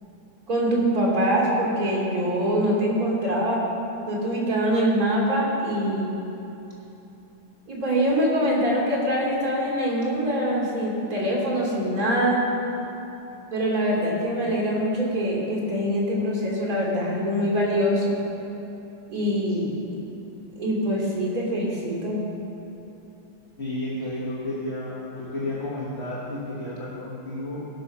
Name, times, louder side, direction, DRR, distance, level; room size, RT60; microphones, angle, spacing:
voice 1, 0.5-3.6 4.1-6.1 7.7-12.4 13.5-18.1 19.1-19.7 20.6-22.2, equal, 40° right, -4 dB, 3.8 m, -24 dB
voice 2, 23.6-27.7, left 1 dB, 35° left, -6 dB, 1.7 m, -32 dB
18.0 x 6.3 x 6.0 m, 3.0 s
omnidirectional pair, 2.4 m